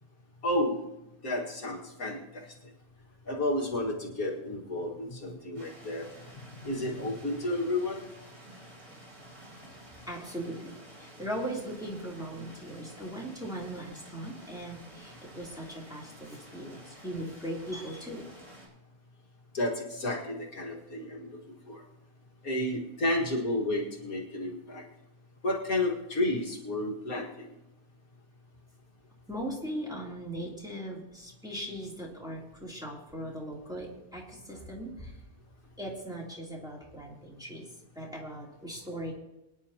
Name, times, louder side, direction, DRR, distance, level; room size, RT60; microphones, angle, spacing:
voice 1, 0.4-0.8 1.2-2.5 3.3-6.1 6.3-8.0 19.5-21.4 21.7-21.8 22.4-24.8 25.4-27.6, left 1 dB, 70° left, -1 dB, 2.3 m, -31 dB
sound 1, 5.5-18.7, right 1 dB, 55° right, 4.2 m, -51 dB
voice 2, 10.1-18.3 29.3-35.2 35.8-37.7 37.9-39.1, right 1 dB, 5° right, -4 dB, 3.0 m, -39 dB
24.0 x 10.5 x 2.9 m, 0.95 s
omnidirectional pair, 1.6 m